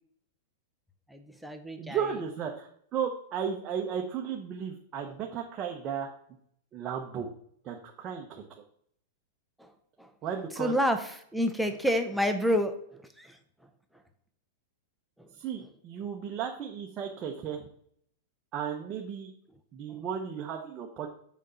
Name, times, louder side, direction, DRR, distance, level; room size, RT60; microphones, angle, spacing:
voice 1, 1.1-2.0 9.6-9.7 10.0-10.1 10.6-11.0 11.3-12.7 13.2-13.3, equal, ahead, 6 dB, 0.6 m, -28 dB
voice 2, 1.8-6.1 6.7-7.3 7.6-8.4 10.2-10.7 15.3-17.7 18.5-19.3 19.7-21.1, right 7 dB, 30° right, 1 dB, 0.9 m, -34 dB
6.4 x 5.1 x 6.9 m, 0.66 s
supercardioid pair, 150°, 0 cm